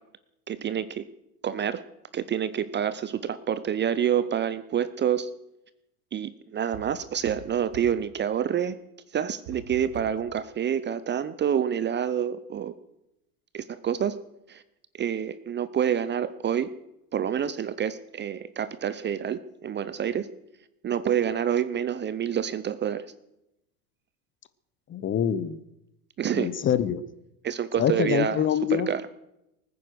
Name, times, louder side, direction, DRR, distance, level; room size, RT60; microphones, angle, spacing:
voice 1, 0.5-1.1 1.4-1.8 2.1-5.3 6.1-8.8 9.1-12.7 13.5-14.2 14.5-14.6 15.0-16.7 17.1-20.3 20.8-23.1 26.2-26.5 27.4-28.4 28.7-29.0, right 9 dB, 25° right, 15 dB, 0.7 m, -27 dB
sound 1, 6.7-8.1 9.4-10.3, right 4 dB, 65° right, 3.6 m, -43 dB
voice 2, 24.9-25.6 26.3-27.0 27.8-28.9, left 9 dB, 25° left, 14 dB, 0.8 m, -25 dB
19.5 x 9.6 x 6.4 m, 0.86 s
hypercardioid pair, 90°, 48 cm